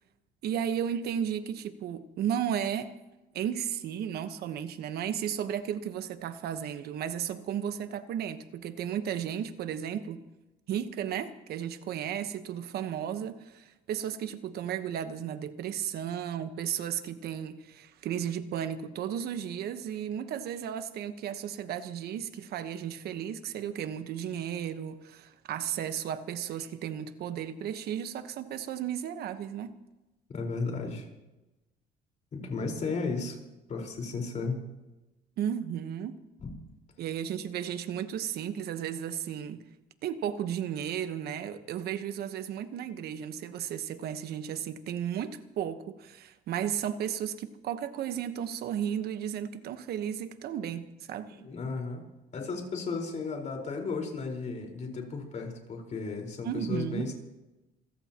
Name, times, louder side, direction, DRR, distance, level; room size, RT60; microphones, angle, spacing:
voice 1, 0.4-2.9 3.3-10.2 10.7-29.7 35.4-36.2 37.0-39.6 40.0-51.4 56.4-57.1, right 9 dB, 70° right, 1.2 m, -34 dB
voice 2, 30.3-31.1 32.3-33.4 33.7-34.6 36.4-36.5 51.3-52.0 52.3-57.1, left 4 dB, 45° left, 4.7 m, -34 dB
27.0 x 16.0 x 3.0 m
cardioid pair, 110°, 17 cm